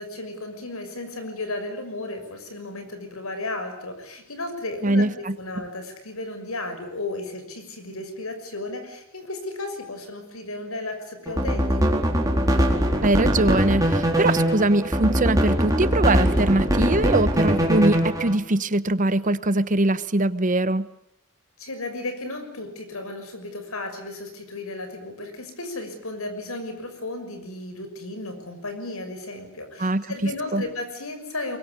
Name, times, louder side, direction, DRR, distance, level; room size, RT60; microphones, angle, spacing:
voice 1, 0.0-5.1 5.4-12.0 21.6-31.6, left 2 dB, 80° left, 7 dB, 6.3 m, -34 dB
voice 2, 4.8-5.6 13.0-20.9 29.8-30.6, right 2 dB, 35° right, 15 dB, 1.0 m, -22 dB
sound 1, 11.3-18.4, equal, 15° right, 4.1 m, -22 dB
23.5 x 22.5 x 9.8 m, 0.78 s
head